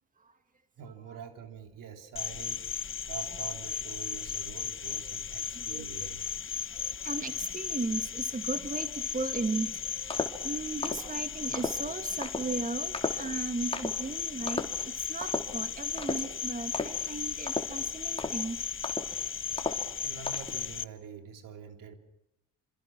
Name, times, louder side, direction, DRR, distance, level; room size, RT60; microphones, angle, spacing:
voice 1, 0.8-6.3 20.0-21.9, right 8 dB, 65° right, 5 dB, 3.6 m, -45 dB
Cricket, 2.2-20.9, left 7 dB, 35° left, 1.2 m, -35 dB
voice 2, 6.8-14.7 15.1-18.6, right 3 dB, 25° right, 7 dB, 2.2 m, -36 dB
sound 1, 10.1-10.5 10.8-11.1 11.5-11.8 12.2-12.5 12.9-13.3 13.7-14.0 14.5-14.8 15.2-15.5 16.0-16.3 16.7-17.0 17.5-17.8 18.2-18.5 18.8-19.2 19.6-19.9 20.3-20.6, left 3 dB, 15° left, 3.6 m, -34 dB
27.0 x 27.0 x 6.2 m, 0.86 s
supercardioid pair, 65°, 35 cm